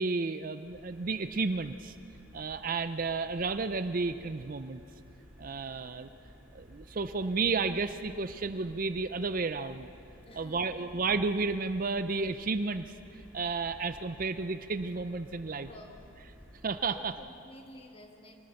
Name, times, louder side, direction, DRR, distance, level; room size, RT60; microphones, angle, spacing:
voice 1, 0.0-2.0 2.3-4.8 5.4-6.1 6.5-9.9 10.3-15.7 16.6-17.1, right 4 dB, 40° right, 11 dB, 0.5 m, -32 dB
sound 1, 0.6-17.1, equal, 5° right, 4.0 m, -54 dB
voice 2, 10.2-10.9 15.6-16.1 16.9-18.4, left 1 dB, 25° left, 3 dB, 1.7 m, -52 dB
26.0 x 19.0 x 6.5 m, 2.8 s
head